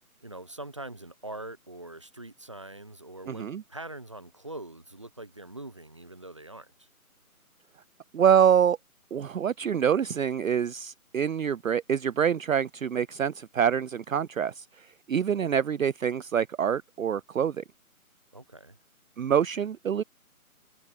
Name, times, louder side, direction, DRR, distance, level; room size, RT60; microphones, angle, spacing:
voice 1, 0.2-6.9 18.3-18.8, right 2 dB, 20° right, 0.7 m, -43 dB
voice 2, 3.3-3.6 8.1-8.8 9.1-17.6 19.2-20.0, right 8 dB, 65° right, 0.5 m, -26 dB
figure-of-eight pair, 155°, 44 cm